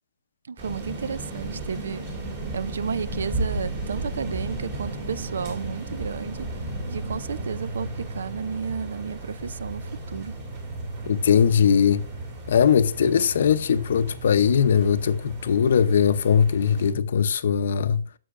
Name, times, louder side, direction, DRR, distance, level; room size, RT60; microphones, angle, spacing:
voice 1, 0.5-2.0 2.5-6.5 6.9-7.9 8.1-10.3, right 6 dB, 80° right, 0.4 m, -32 dB
sound 1, 0.6-16.9, right 2 dB, 25° right, 2.5 m, -36 dB
sound 2, 2.0-17.1, right 2 dB, ahead, 0.7 m, -39 dB
voice 2, 11.1-12.0 12.5-18.0, left 7 dB, 55° left, 0.6 m, -20 dB
9.8 x 7.6 x 2.5 m
hypercardioid pair, 175°, 0 cm